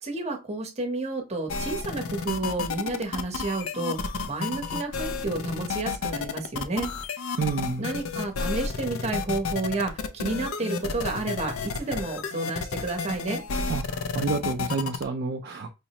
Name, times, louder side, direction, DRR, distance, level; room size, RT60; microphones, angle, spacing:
voice 1, 0.0-6.9 7.8-13.4, right 2 dB, 30° right, 0.8 m, -31 dB
sound 1, 1.5-15.0, left 5 dB, 80° left, 0.4 m, -31 dB
voice 2, 7.4-7.9 13.7-15.8, right 4 dB, 50° right, 0.3 m, -29 dB
4.9 x 2.0 x 2.8 m
head